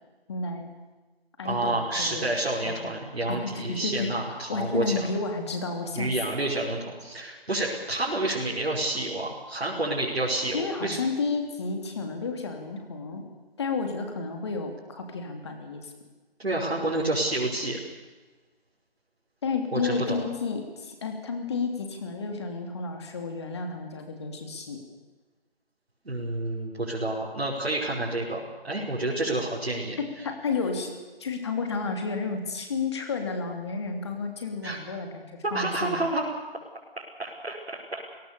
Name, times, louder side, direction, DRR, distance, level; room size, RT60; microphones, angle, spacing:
voice 1, 0.3-0.7 1.4-2.3 2.6-2.9 3.3-6.1 10.5-13.3 13.6-15.9 19.4-24.8 30.0-30.9 31.2-36.0, left 4 dB, 25° left, 4 dB, 3.0 m, -31 dB
voice 2, 1.4-5.0 5.9-11.0 16.4-17.8 19.7-20.2 26.1-28.4 28.6-30.0 34.6-34.8 35.4-36.2 37.2-38.0, right 2 dB, 80° right, -5 dB, 5.6 m, -29 dB
28.5 x 18.0 x 7.0 m, 1.3 s
figure-of-eight pair, 165°, 31 cm